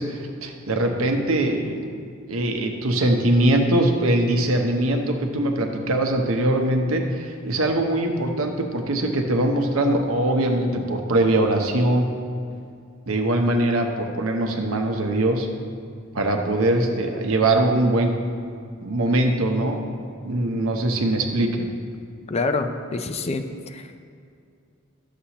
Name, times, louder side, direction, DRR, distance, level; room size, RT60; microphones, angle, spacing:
voice 1, 0.0-1.9 2.3-12.1 13.1-15.5 16.1-18.1 18.8-19.8 20.2-21.7, right 1 dB, 75° right, 4 dB, 0.8 m, -22 dB
voice 2, 22.3-23.9, left 3 dB, 30° left, 7 dB, 0.4 m, -27 dB
11.0 x 6.8 x 2.9 m, 2.3 s
head